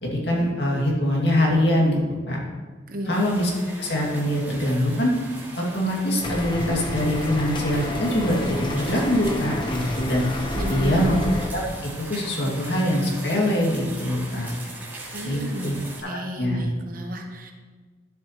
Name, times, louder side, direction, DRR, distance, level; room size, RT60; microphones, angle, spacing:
voice 1, 0.0-2.0 2.3-2.4 3.1-3.5 3.8-5.1 5.6-10.3 10.7-11.2 11.5-14.5 15.2-15.7 16.0-16.7, left 1 dB, 65° left, -3 dB, 2.2 m, -23 dB
voice 2, 2.9-3.2 10.5-11.1 15.1-17.5, equal, 50° right, 4 dB, 0.9 m, -33 dB
sound 1, 3.1-16.0, right 2 dB, 10° right, 2.3 m, -40 dB
sound 2, 6.2-11.5, left 1 dB, 25° left, 0.9 m, -29 dB
11.5 x 7.1 x 3.0 m, 1.4 s
head